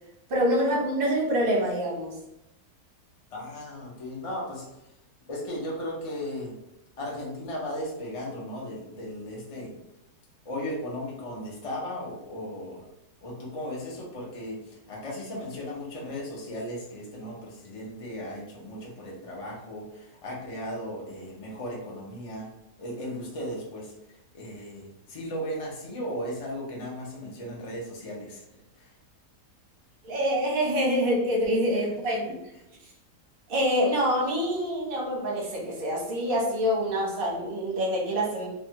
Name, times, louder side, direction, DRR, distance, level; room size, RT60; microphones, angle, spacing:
voice 1, 0.3-2.1 30.0-32.3 33.5-38.5, equal, 45° right, -3 dB, 0.7 m, -26 dB
voice 2, 3.3-4.8 5.3-6.6 7.0-9.7 10.4-12.8 13.2-22.5 22.8-28.4 28.8-28.9 31.5-31.6 32.1-32.2, equal, 50° left, -4 dB, 0.4 m, -36 dB
2.8 x 2.3 x 2.7 m, 0.87 s
omnidirectional pair, 1.7 m